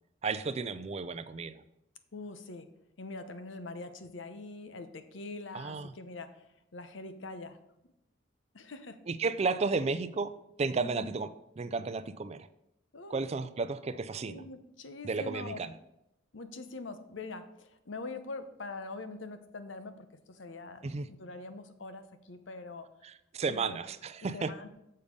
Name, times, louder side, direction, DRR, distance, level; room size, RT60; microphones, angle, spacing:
voice 1, 0.2-1.6 5.5-5.9 9.1-10.3 10.6-11.3 11.6-12.5 13.1-14.5 15.0-15.7 20.8-21.1 23.0-24.5, right 4 dB, 35° right, 13 dB, 0.4 m, -33 dB
voice 2, 2.1-2.7 3.0-6.5 6.7-7.6 8.5-9.0 10.8-11.1 12.9-13.2 14.3-15.6 16.3-22.9 23.5-23.8 24.2-24.7, left 3 dB, 80° left, 10 dB, 0.8 m, -43 dB
7.0 x 6.6 x 5.3 m, 0.84 s
head